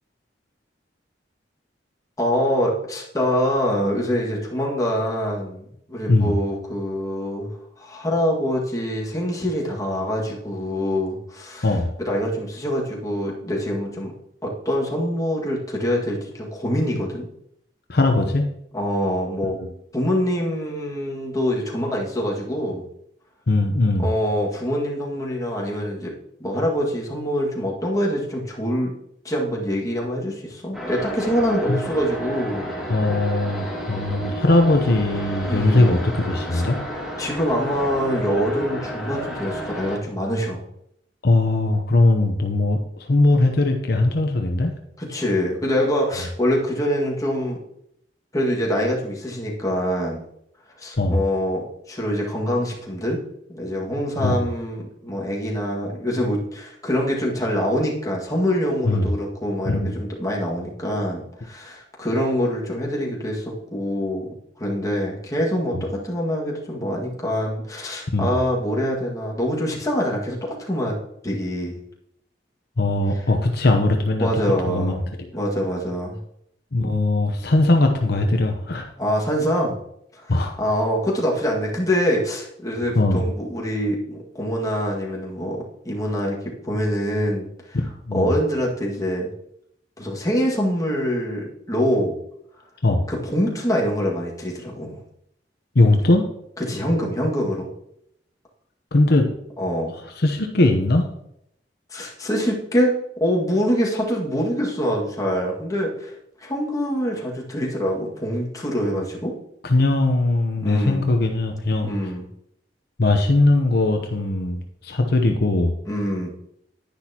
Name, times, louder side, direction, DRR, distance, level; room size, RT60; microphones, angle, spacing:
voice 1, 2.2-7.5 7.8-11.7 12.0-14.1 14.4-17.3 18.7-19.6 19.9-22.9 24.0-26.1 26.4-28.9 29.2-32.7 35.5-36.0 36.5-36.6 37.2-40.6 45.0-47.6 48.3-50.2 50.8-53.2 53.5-64.3 64.6-71.0 71.2-71.8 73.1-73.2 74.2-75.0 75.3-76.2 79.0-79.8 80.1-87.8 88.1-89.3 90.0-92.2 93.1-95.0 96.7-97.7 99.6-99.9 101.9-106.1 106.4-109.3 110.6-111.1 111.8-112.3 115.9-116.3, equal, 20° left, -3 dB, 1.9 m, -25 dB
voice 2, 17.9-18.4 19.6-19.7 23.5-24.1 31.7-31.8 32.9-36.8 41.2-44.7 51.0-51.2 54.2-54.4 58.8-59.1 59.7-59.9 65.7-65.8 68.1-68.3 72.8-74.3 74.6-75.3 76.7-78.9 80.3-80.5 82.9-83.3 88.0-88.3 92.8-93.1 95.7-96.2 98.9-99.2 100.2-101.0 109.6-111.9 113.0-115.8, left 2 dB, 65° left, 4 dB, 0.9 m, -20 dB
sound 1, 30.7-40.0, equal, 5° right, 2.2 m, -31 dB
10.5 x 10.0 x 2.9 m, 0.75 s
head